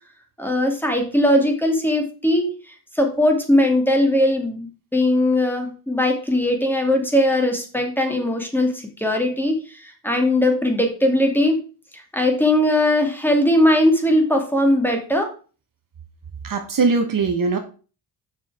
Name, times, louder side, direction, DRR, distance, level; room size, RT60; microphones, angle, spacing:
voice 1, 0.4-11.6 11.9-15.3, left 1 dB, 5° left, 3 dB, 2.4 m, -20 dB
voice 2, 16.4-17.6, right 4 dB, 45° right, 5 dB, 1.2 m, -20 dB
6.2 x 6.1 x 4.9 m, 0.37 s
cardioid pair, 80°, 45 cm